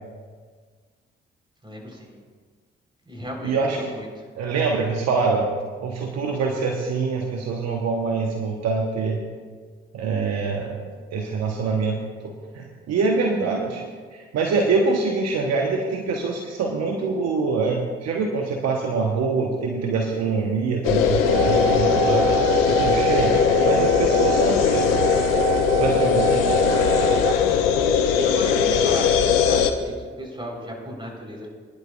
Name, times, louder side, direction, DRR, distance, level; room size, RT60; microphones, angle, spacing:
voice 1, 1.6-2.2 3.1-4.1 26.9-27.1 28.2-31.5, equal, 15° right, -1 dB, 4.1 m, -35 dB
voice 2, 3.4-3.9 4.4-5.5 5.8-9.2 9.9-10.8 11.1-13.8 14.1-22.3 22.6-23.4 23.7-25.1 25.8-26.4, right 4 dB, 65° right, 1 dB, 1.2 m, -24 dB
sound 1, 20.8-29.7, left 7 dB, 80° left, 0.7 m, -20 dB
sound 2, 21.1-27.3, right 10 dB, 80° right, 0.6 m, -27 dB
22.0 x 11.0 x 2.5 m, 1.5 s
hypercardioid pair, 40°, 29 cm